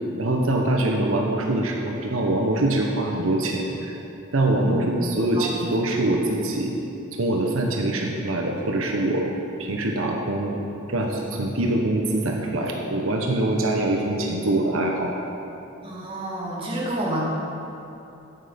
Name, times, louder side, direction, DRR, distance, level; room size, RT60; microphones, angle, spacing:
voice 1, 0.2-3.9 4.3-6.7 7.2-9.3 9.6-10.5 10.9-15.1, right 1 dB, 85° right, 0 dB, 1.1 m, -24 dB
voice 2, 4.6-4.9 5.3-5.5 15.8-17.2, right 1 dB, 25° right, -6 dB, 2.4 m, -29 dB
12.0 x 8.8 x 5.3 m, 2.9 s
head